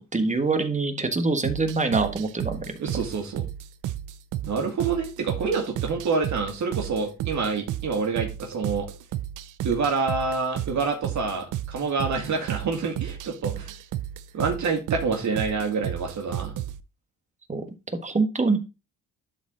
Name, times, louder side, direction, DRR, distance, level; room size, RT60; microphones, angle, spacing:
voice 1, 0.1-2.6 17.5-17.6 18.0-18.6, right 3 dB, 25° right, 7 dB, 1.4 m, -24 dB
sound 1, 1.4-16.8, right 12 dB, 85° right, 0.6 m, -33 dB
voice 2, 2.8-3.5 4.4-8.9 9.6-13.7 14.3-16.6, right 4 dB, 70° right, 1 dB, 2.2 m, -27 dB
11.5 x 4.2 x 3.8 m, 0.28 s
cardioid pair, 100°, 30 cm